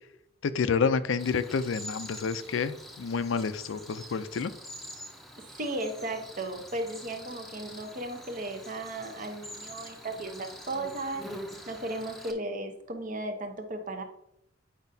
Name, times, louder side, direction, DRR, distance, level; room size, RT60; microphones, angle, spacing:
voice 1, 0.4-4.5, left 5 dB, 80° left, 13 dB, 0.4 m, -29 dB
Cricket, 1.2-12.3, equal, ahead, 0.7 m, -45 dB
voice 2, 5.5-11.3 11.7-14.0, right 2 dB, 40° right, 5 dB, 0.8 m, -35 dB
8.9 x 5.2 x 2.7 m, 0.76 s
head